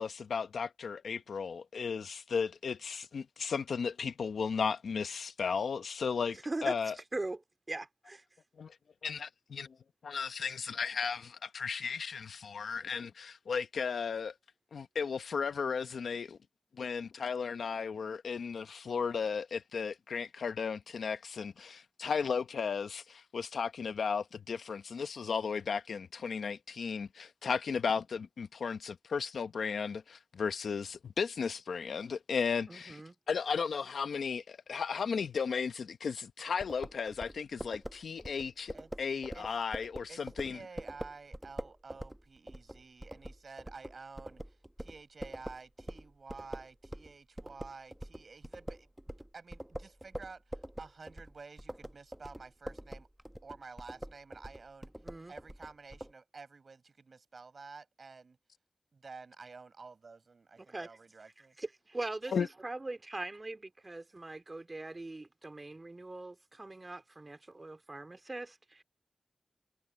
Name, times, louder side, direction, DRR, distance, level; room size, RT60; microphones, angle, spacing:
voice 1, 0.0-7.0 8.6-8.7 9.0-9.7 10.0-14.3 14.7-16.4 16.8-33.0 33.3-40.6 62.3-62.5, left 6 dB, 90° left, 1.0 m, -35 dB
voice 2, 6.4-6.8 7.1-7.4 7.7-8.2 32.7-33.1 55.0-55.3 60.6-60.9 61.6-62.3 62.6-68.8, right 2 dB, 40° right, 3.1 m, -41 dB
sound 1, 36.6-47.1 47.4-56.1, right 1 dB, 10° right, 1.3 m, -44 dB
voice 3, 40.1-48.9 49.3-53.1 53.4-54.9 55.3-58.4 58.9-61.6 64.1-64.2, right 4 dB, 65° right, 6.3 m, -51 dB
cardioid pair, 45°, 0 cm